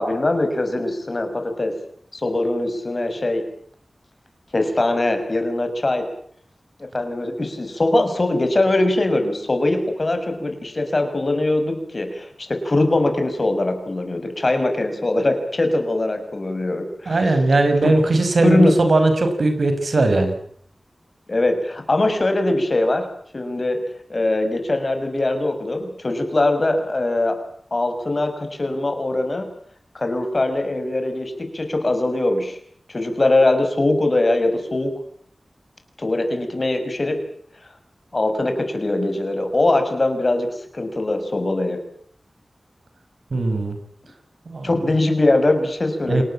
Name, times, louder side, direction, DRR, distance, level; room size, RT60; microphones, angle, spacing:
voice 1, 0.0-1.7 2.1-3.4 4.5-6.1 6.8-17.3 17.8-17.9 18.4-18.8 21.3-23.1 23.3-23.8 24.1-27.4 27.7-29.5 29.9-32.6 32.9-34.9 36.0-37.2 38.1-41.8 44.6-46.2, left 2 dB, 45° left, 7 dB, 6.2 m, -21 dB
voice 2, 17.1-20.3 43.3-43.8 44.5-44.7 46.1-46.2, right 2 dB, 75° right, 7 dB, 5.7 m, -18 dB
28.5 x 18.5 x 8.9 m, 0.63 s
wide cardioid pair, 90°, 0 cm